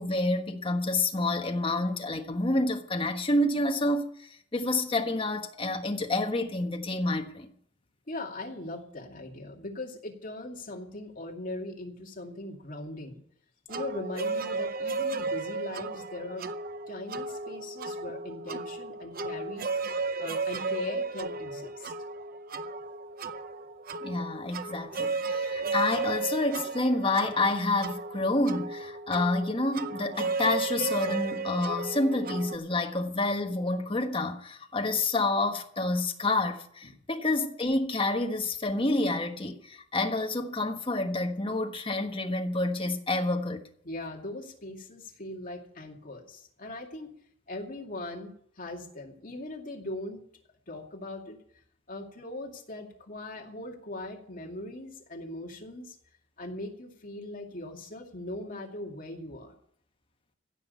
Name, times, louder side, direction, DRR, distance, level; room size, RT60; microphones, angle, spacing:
voice 1, 0.0-7.5 24.0-43.6, left 2 dB, 30° left, 1.4 m, -28 dB
voice 2, 8.1-13.2 13.7-16.5 16.9-21.9 36.8-37.0 43.8-47.1 47.5-50.2 50.7-51.4 51.9-56.0 56.4-59.5, left 2 dB, 45° left, 2.4 m, -40 dB
sound 1, 13.7-32.6, right 3 dB, 50° right, 0.7 m, -34 dB
16.0 x 6.1 x 9.4 m
head